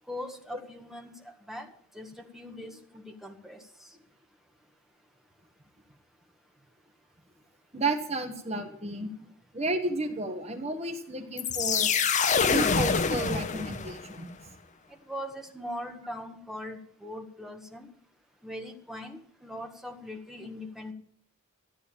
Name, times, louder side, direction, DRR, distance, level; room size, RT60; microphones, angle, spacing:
voice 1, 0.1-1.7 1.9-3.6 15.1-17.9 18.4-20.9, left 1 dB, ahead, 3 dB, 1.7 m, -41 dB
voice 2, 7.7-9.1 9.5-11.9 12.5-14.5, right 2 dB, 30° right, 5 dB, 1.6 m, -32 dB
sound 1, 11.4-14.2, left 5 dB, 35° left, 0.7 m, -26 dB
14.0 x 9.6 x 8.6 m, 0.62 s
head